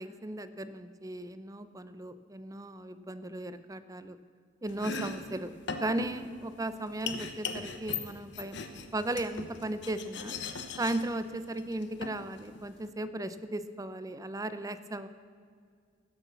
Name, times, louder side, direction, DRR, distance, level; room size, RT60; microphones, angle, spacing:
voice 1, 0.0-4.2 4.6-5.5 5.8-8.6 8.9-10.3 10.8-15.1, right 1 dB, 20° right, 12 dB, 0.6 m, -36 dB
Domestic sounds home sounds, 4.7-12.9, left 4 dB, 65° left, 1.1 m, -40 dB
17.0 x 7.8 x 7.1 m, 2.1 s
head